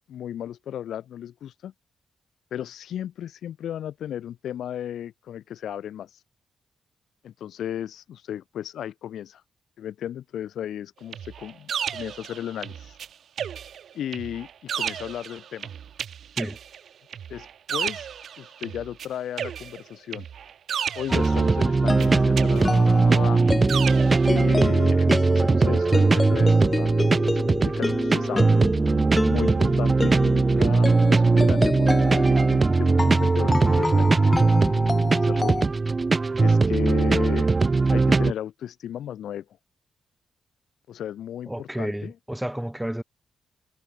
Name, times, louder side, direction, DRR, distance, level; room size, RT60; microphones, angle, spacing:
voice 1, 0.1-1.7 2.5-6.1 7.2-9.4 9.8-13.0 13.9-15.7 17.3-18.1 18.4-20.3 20.9-23.4 24.2-28.5 29.3-35.6 36.4-37.5 37.9-39.4 40.9-42.1, left 10 dB, 80° left, 4.8 m, -35 dB
sound 1, 11.1-13.1 13.4-19.1 19.4-21.6 22.0-24.3, right 8 dB, 70° right, 7.9 m, -34 dB
sound 2, 21.1-35.6, left 3 dB, 30° left, 7.9 m, -29 dB
sound 3, 21.1-38.3, right 3 dB, 35° right, 1.9 m, -20 dB
voice 2, 41.5-43.0, right 1 dB, 5° right, 4.8 m, -31 dB
supercardioid pair, 50°, 0 cm